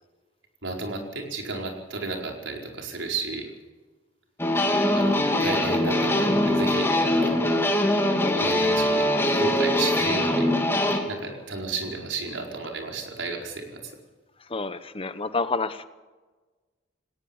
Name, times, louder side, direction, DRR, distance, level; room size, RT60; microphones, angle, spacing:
voice 1, 0.6-3.5 4.9-7.5 8.4-10.5 11.1-13.9, right 3 dB, 90° right, 1 dB, 4.7 m, -33 dB
sound 1, 4.4-11.0, left 1 dB, 15° left, 2.8 m, -22 dB
voice 2, 14.5-15.9, left 3 dB, 30° left, 12 dB, 0.9 m, -28 dB
19.0 x 19.0 x 7.2 m, 1.3 s
head